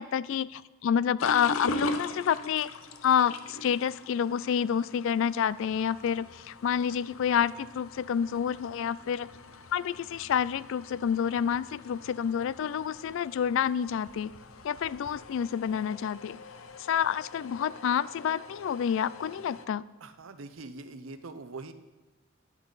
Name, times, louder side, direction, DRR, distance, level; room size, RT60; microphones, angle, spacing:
voice 1, 0.0-2.7 3.0-9.3 9.7-14.3 14.6-16.4 16.8-19.8, left 8 dB, 65° left, 19 dB, 0.3 m, -28 dB
sound 1, 1.2-19.7, left 2 dB, 85° left, 0.7 m, -42 dB
voice 2, 20.0-21.7, right 3 dB, 75° right, 10 dB, 0.8 m, -43 dB
12.0 x 10.0 x 4.0 m, 1.2 s
head